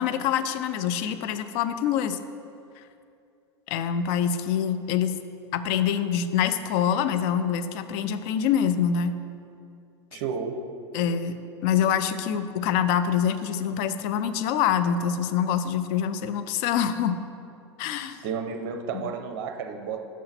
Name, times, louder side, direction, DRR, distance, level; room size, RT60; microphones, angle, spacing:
voice 1, 0.0-2.2 3.7-5.2 5.5-9.2 10.1-10.2 10.9-17.2 17.8-18.2 18.9-19.1, left 8 dB, 45° left, 11 dB, 0.4 m, -25 dB
voice 2, 10.1-10.6 18.2-20.0, right 6 dB, 50° right, 7 dB, 0.5 m, -32 dB
6.1 x 5.6 x 4.2 m, 2.5 s
figure-of-eight pair, 85°, 14 cm